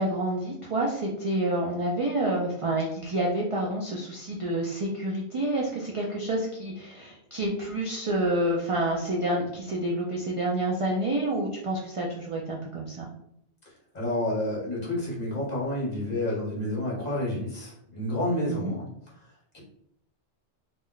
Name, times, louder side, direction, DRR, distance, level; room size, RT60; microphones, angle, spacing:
voice 1, 0.0-13.1 18.5-18.8, right 1 dB, 60° right, -3 dB, 0.3 m, -28 dB
voice 2, 13.9-18.9 19.5-19.6, left 1 dB, 40° left, -5 dB, 1.1 m, -29 dB
2.4 x 2.1 x 3.7 m, 0.73 s
omnidirectional pair, 1.2 m